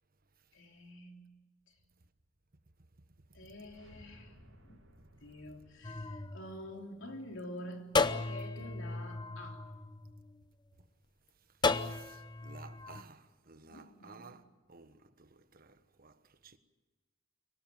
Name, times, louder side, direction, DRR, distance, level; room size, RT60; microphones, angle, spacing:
voice 1, 0.5-1.4 1.7-1.8 3.3-4.3 4.6-4.8 5.2-9.7 13.7-14.4, left 1 dB, 70° left, 3.3 m, -48 dB
sound 1, 3.1-8.1, equal, 80° right, 5.9 m, -62 dB
sound 2, 5.8-7.3 7.9-10.5 11.6-13.0, left 3 dB, 25° left, 0.8 m, -35 dB
voice 2, 11.7-16.6, right 4 dB, 50° right, 1.4 m, -56 dB
24.0 x 18.5 x 9.3 m
head